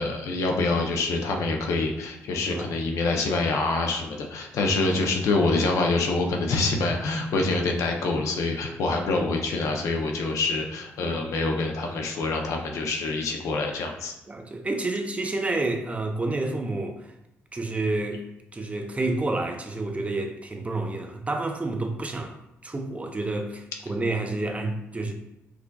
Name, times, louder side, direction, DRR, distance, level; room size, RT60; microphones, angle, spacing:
voice 1, 0.0-14.1, left 3 dB, 75° left, 0.6 m, -26 dB
voice 2, 14.3-17.0 17.5-18.2 18.5-22.3 22.6-25.1, right 2 dB, 25° right, 0.6 m, -29 dB
4.8 x 2.5 x 2.3 m
supercardioid pair, 60°, 5 cm